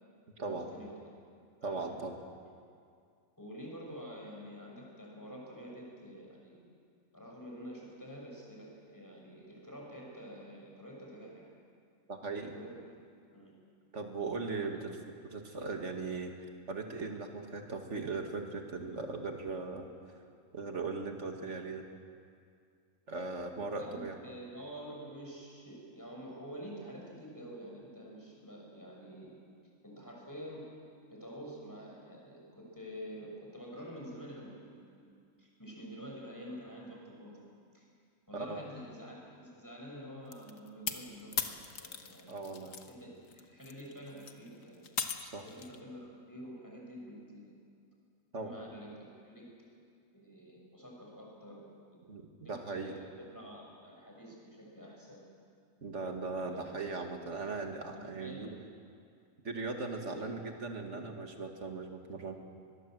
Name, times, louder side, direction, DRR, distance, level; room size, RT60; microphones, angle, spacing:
voice 1, 0.4-1.0 1.6-2.0 3.4-6.6 7.1-11.5 12.4-12.8 13.3-13.5 14.6-14.7 23.8-29.4 29.8-30.7 31.1-37.3 37.7-37.8 38.3-44.8 45.4-47.6 48.3-49.5 50.1-51.7 52.4-55.2 56.4-56.7 57.9-58.5 59.9-60.2 60.9-61.2, equal, 15° left, -2 dB, 5.9 m, -48 dB
voice 2, 1.6-2.2 12.1-12.6 13.9-14.9 15.2-16.3 16.7-19.9 20.5-21.9 23.1-24.2 38.3-38.7 42.3-42.7 45.2-45.5 48.3-48.5 52.1-52.9 55.8-58.6 59.4-62.3, right 3 dB, 55° right, 4 dB, 2.4 m, -38 dB
sound 1, 40.3-42.9 43.2-45.8, left 6 dB, 70° left, 1.6 m, -39 dB
23.5 x 21.0 x 7.7 m, 2.3 s
omnidirectional pair, 1.4 m